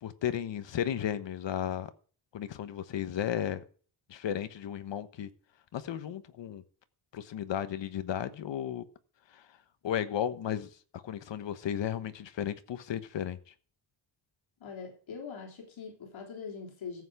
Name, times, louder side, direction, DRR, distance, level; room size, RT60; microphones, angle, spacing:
voice 1, 0.0-1.9 2.3-3.6 4.1-5.3 5.7-6.6 7.1-8.8 9.3-9.4 9.8-13.4, left 10 dB, 70° left, 1.2 m, -34 dB
voice 2, 14.6-17.0, left 5 dB, 85° left, 3.6 m, -42 dB
14.5 x 8.2 x 4.8 m
wide cardioid pair, 155°, 45 cm